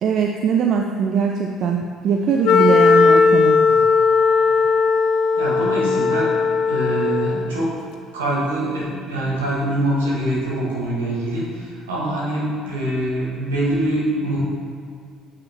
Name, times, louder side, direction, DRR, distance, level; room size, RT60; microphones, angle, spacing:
voice 1, 0.0-3.6, right 6 dB, 55° right, 2 dB, 0.3 m, -21 dB
Wind instrument woodwind instrument, 2.4-7.5, left 5 dB, 65° left, 0.4 m, -17 dB
voice 2, 5.4-6.3 6.7-7.7 8.1-14.4, right 1 dB, 80° right, -6 dB, 1.5 m, -24 dB
8.7 x 3.5 x 3.5 m, 2.2 s
figure-of-eight pair, 55°, 0 cm